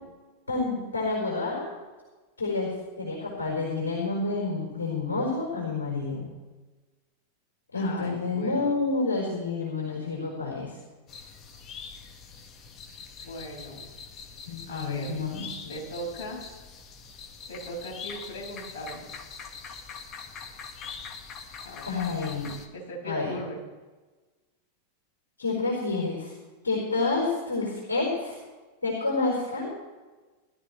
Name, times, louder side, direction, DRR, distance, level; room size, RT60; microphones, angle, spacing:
voice 1, 0.5-1.7 2.4-6.3 7.7-10.8 14.5-15.7 21.8-22.5 23.0-23.3 25.4-26.3 26.6-28.4 28.8-29.7, left 3 dB, 75° left, -3 dB, 4.7 m, -29 dB
voice 2, 7.7-8.7 13.2-13.9 14.7-15.2 15.7-16.7 17.5-19.1 21.6-21.9 22.7-23.6, equal, 50° left, -3 dB, 5.8 m, -38 dB
sound 1, 11.1-22.7, left 5 dB, 30° left, 1.7 m, -43 dB
20.0 x 13.0 x 3.3 m, 1.2 s
figure-of-eight pair, 90°, 0 cm